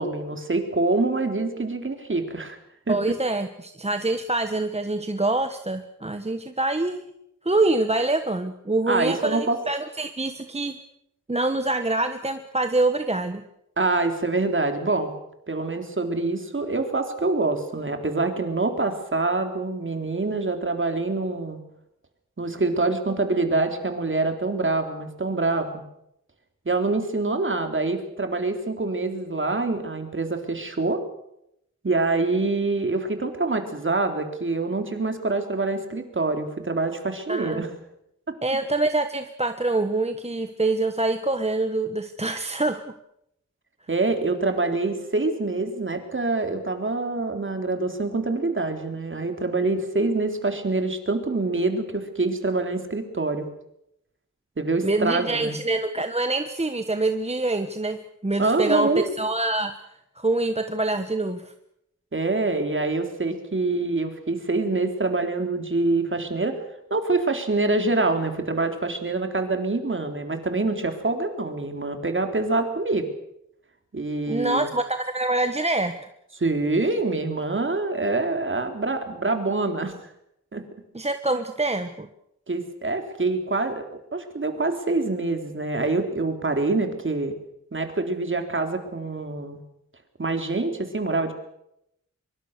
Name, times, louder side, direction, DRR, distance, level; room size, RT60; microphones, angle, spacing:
voice 1, 0.0-2.6 2.9-3.0 8.9-9.6 13.8-15.1 15.5-21.6 22.4-25.8 26.7-31.0 31.8-37.7 43.9-53.5 54.6-55.6 58.4-59.0 62.1-66.6 66.9-73.1 73.9-74.7 76.4-79.9 80.5-80.6 82.5-83.8 84.1-87.4 87.7-89.6 90.2-91.3, right 3 dB, 40° right, 6 dB, 3.7 m, -25 dB
voice 2, 2.9-7.0 7.4-10.8 11.3-13.4 37.3-37.6 38.4-42.8 54.8-59.7 60.2-61.5 74.3-75.9 80.9-82.1, right 2 dB, 20° right, 8 dB, 1.3 m, -25 dB
24.5 x 23.5 x 6.8 m, 0.80 s
wide cardioid pair, 95°, 30 cm